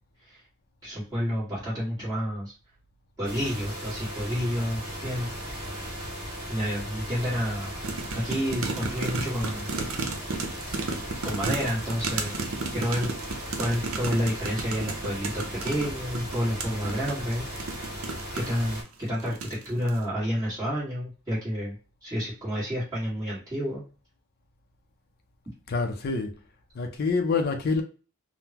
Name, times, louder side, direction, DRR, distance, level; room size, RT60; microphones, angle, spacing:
voice 1, 0.8-2.5 3.2-5.3 6.1-7.7 8.1-9.7 11.2-12.3 12.7-13.1 13.6-17.9 18.3-18.8 19.1-21.7 22.0-23.8, equal, 15° right, 1.5 m, -30 dB
sound 1, 3.2-18.8, equal, 40° right, 1.6 m, -37 dB
sound 2, 7.8-18.6 19.2-19.6 19.9-20.0, right 3 dB, 70° right, 0.6 m, -33 dB
voice 2, 25.7-26.4 26.8-27.8, left 4 dB, 45° left, 0.5 m, -26 dB
3.6 x 2.1 x 2.8 m
head